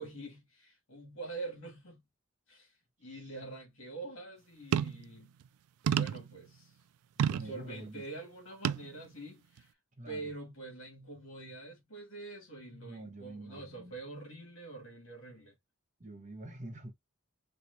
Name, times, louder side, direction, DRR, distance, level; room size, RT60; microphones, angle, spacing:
voice 1, 0.0-2.0 2.5-5.3 5.8-6.7 7.4-9.7 10.0-15.6, right 3 dB, 65° left, 1.6 m, -45 dB
voice 2, 3.0-3.3 7.2-8.0 10.0-10.3 12.7-13.9 16.0-16.9, right 1 dB, 35° right, 0.9 m, -47 dB
sound 1, 4.7-5.1 5.9-6.3 7.2-7.5 8.6-8.9 9.6-9.7, right 8 dB, 90° right, 0.3 m, -29 dB
4.4 x 2.2 x 2.6 m
head